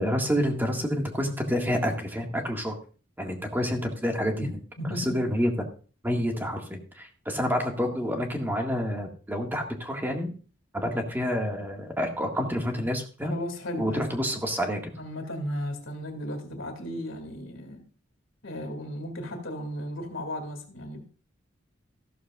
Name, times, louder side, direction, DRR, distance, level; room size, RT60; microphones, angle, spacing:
voice 1, 0.0-2.8 3.2-4.5 4.9-5.5 6.0-6.6 6.9-10.3 10.7-13.3 13.8-14.9, equal, 10° right, 1.8 m, -28 dB
voice 2, 4.8-5.3 6.3-6.4 13.2-14.0 15.0-17.8 18.4-21.0, equal, 80° left, 2.5 m, -35 dB
14.5 x 13.0 x 2.4 m
head